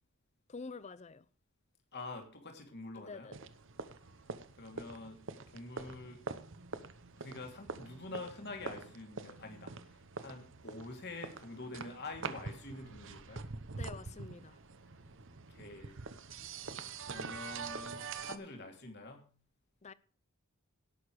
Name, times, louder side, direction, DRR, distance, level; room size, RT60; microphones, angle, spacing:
voice 1, 0.5-1.3 2.9-3.4 13.8-14.6 19.8-19.9, left 4 dB, 30° left, 0.5 m, -47 dB
voice 2, 1.9-3.3 4.6-5.2 5.5-6.2 7.2-13.5 15.5-16.0 17.0-19.3, left 2 dB, 50° left, 3.0 m, -46 dB
sound 1, 3.3-18.4, right 4 dB, 55° right, 1.0 m, -45 dB
17.5 x 6.9 x 4.8 m
head